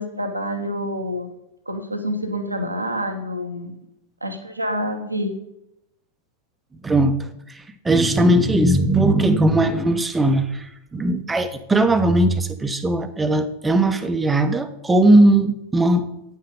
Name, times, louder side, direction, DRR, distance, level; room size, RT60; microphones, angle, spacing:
voice 1, 0.0-1.3 1.7-3.7 4.2-5.4, equal, 85° right, 5 dB, 1.0 m, -27 dB
voice 2, 6.8-10.7 10.9-16.1, right 1 dB, 10° right, 10 dB, 0.7 m, -18 dB
9.1 x 5.7 x 5.0 m, 0.83 s
figure-of-eight pair, 90°, 0 cm